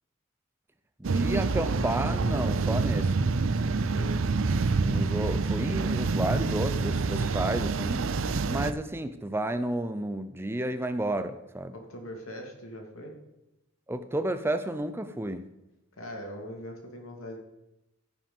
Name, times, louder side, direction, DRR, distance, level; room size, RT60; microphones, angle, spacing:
voice 1, 1.0-3.2 4.9-8.1 8.5-11.7 13.9-15.5, right 1 dB, 10° right, 10 dB, 0.4 m, -31 dB
sound 1, 1.0-8.7, right 4 dB, 65° right, 0.6 m, -27 dB
voice 2, 11.7-13.1 16.0-17.4, equal, 75° left, 2 dB, 2.5 m, -41 dB
15.0 x 5.9 x 5.3 m, 0.96 s
head